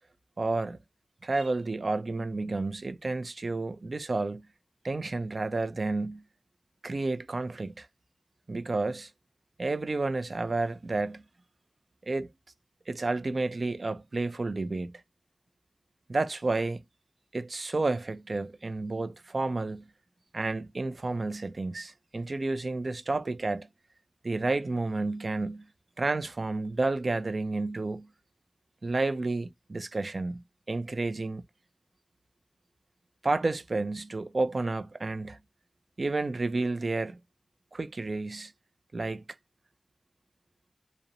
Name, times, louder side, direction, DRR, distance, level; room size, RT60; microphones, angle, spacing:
voice 1, 0.4-0.8 1.2-4.4 4.8-6.2 6.8-7.9 8.5-9.1 9.6-11.2 12.1-12.3 12.9-15.0 16.1-16.8 17.3-19.8 20.3-23.7 24.2-25.6 26.0-28.1 28.8-31.4 33.2-35.4 36.0-37.2 37.7-38.5 38.9-39.2, right 3 dB, 55° right, 0.4 m, -31 dB
2.4 x 2.0 x 2.7 m
wide cardioid pair, 75°, 0 cm